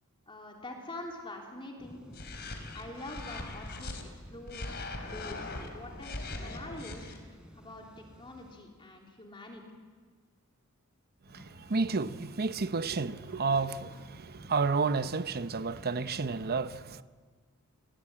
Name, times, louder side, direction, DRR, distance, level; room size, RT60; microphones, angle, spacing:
voice 1, 0.3-2.0 2.7-3.9 4.3-7.1 7.6-9.6, left 1 dB, 25° left, 3.2 m, -45 dB
sound 1, 1.8-8.6, equal, 5° right, 4.3 m, -53 dB
sound 2, 2.1-4.0 4.5-7.2, left 2 dB, 50° left, 3.7 m, -40 dB
sound 3, 11.2-16.5, equal, 65° left, 6.0 m, -55 dB
voice 2, 11.3-17.0, right 4 dB, 45° right, 0.8 m, -31 dB
29.0 x 22.0 x 8.8 m
head